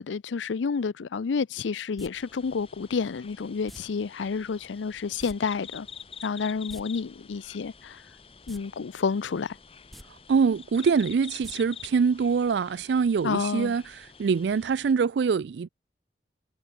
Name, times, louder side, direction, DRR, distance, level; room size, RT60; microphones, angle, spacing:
voice 1, 0.0-5.9 6.2-8.0 8.5-9.6 13.2-13.7, left 5 dB, 85° left, 0.5 m, -30 dB
sound 1, 2.0-2.1 3.7-3.8 5.2-5.4 5.6-5.7 6.5-6.8 8.4-8.6 9.0-9.1 9.8-10.0 11.4-11.5 11.9-12.0, equal, ahead, 4.0 m, -45 dB
sound 2, 2.1-14.9, left 7 dB, 30° left, 1.3 m, -47 dB
voice 2, 10.1-15.7, right 5 dB, 70° right, 0.4 m, -24 dB
head